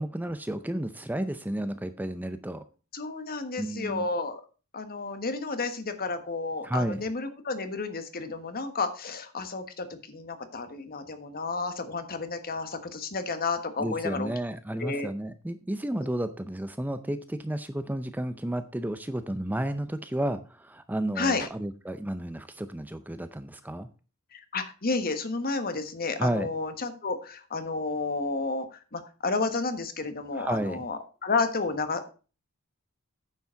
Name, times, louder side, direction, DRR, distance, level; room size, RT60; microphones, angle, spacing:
voice 1, 0.0-2.6 3.6-4.1 6.6-7.0 13.8-23.9 26.2-26.5 30.3-30.8, right 1 dB, 10° right, 10 dB, 0.6 m, -32 dB
voice 2, 2.9-4.4 4.7-14.3 14.8-15.1 16.0-16.1 21.2-21.5 24.3-32.1, left 3 dB, 45° left, 9 dB, 1.4 m, -31 dB
9.5 x 7.2 x 5.7 m, 0.35 s
head